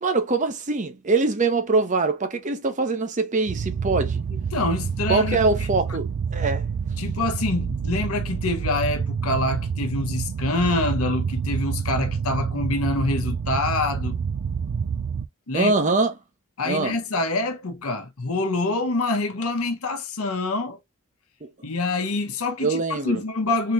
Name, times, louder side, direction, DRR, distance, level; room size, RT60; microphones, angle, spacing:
voice 1, 0.0-4.2 5.1-6.6 15.5-16.1 16.6-17.0 21.4-21.5 22.6-23.2, right 3 dB, 35° right, 0.7 m, -23 dB
sound 1, 3.5-15.3, right 6 dB, 70° right, 0.4 m, -28 dB
voice 2, 4.5-5.4 7.0-14.2 15.5-15.7 16.6-20.8 21.6-23.7, left 2 dB, 80° left, 0.9 m, -26 dB
3.7 x 3.0 x 2.5 m
head